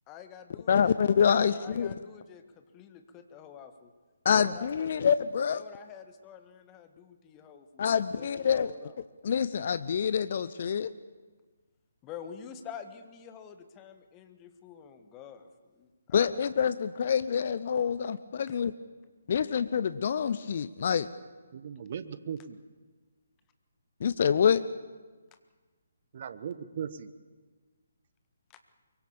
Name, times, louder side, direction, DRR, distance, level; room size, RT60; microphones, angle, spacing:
voice 1, 0.1-1.0 1.4-3.9 4.3-5.0 5.5-9.0 12.0-16.4 28.5-28.6, left 8 dB, 20° left, 8 dB, 1.7 m, -48 dB
voice 2, 0.7-1.9 4.2-5.6 7.8-8.7 9.2-10.9 16.1-18.7 19.3-21.1 24.0-24.7, left 7 dB, 45° left, 14 dB, 0.7 m, -26 dB
voice 3, 21.5-22.6 26.1-27.1, right 8 dB, 40° right, 13 dB, 1.3 m, -38 dB
24.0 x 23.5 x 7.1 m, 1.4 s
figure-of-eight pair, 140°, 0 cm